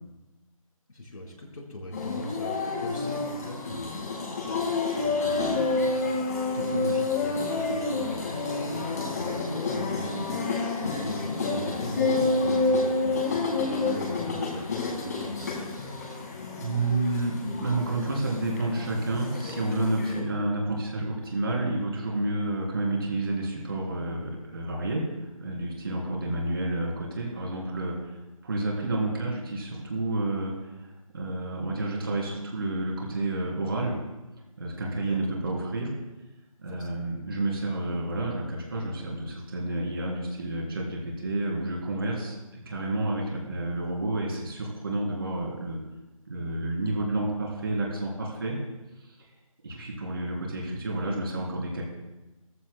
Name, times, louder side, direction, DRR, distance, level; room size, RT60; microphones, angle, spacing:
voice 1, 0.9-6.0 6.5-16.0 25.9-26.1 35.0-35.5 36.7-37.1, left 2 dB, 80° left, -2 dB, 4.1 m, -40 dB
sound 1, 1.9-20.2, left 3 dB, 30° left, 2.0 m, -29 dB
voice 2, 16.6-28.1 28.4-30.9 31.1-34.0 34.6-35.9 36.6-45.8 46.3-48.5 49.6-51.8, right 2 dB, 40° right, -2 dB, 3.3 m, -30 dB
17.0 x 14.0 x 2.2 m, 1.1 s
figure-of-eight pair, 175°, 18 cm